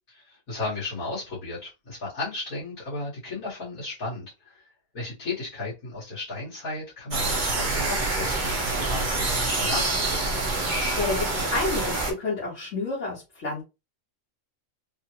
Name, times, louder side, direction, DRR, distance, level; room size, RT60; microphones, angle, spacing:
voice 1, 0.1-10.5, left 2 dB, 80° left, 2.1 m, -35 dB
sound 1, 7.1-12.1, right 2 dB, 40° right, 1.0 m, -26 dB
voice 2, 11.0-13.6, left 3 dB, 60° left, 1.6 m, -29 dB
3.6 x 2.2 x 2.9 m
omnidirectional pair, 1.4 m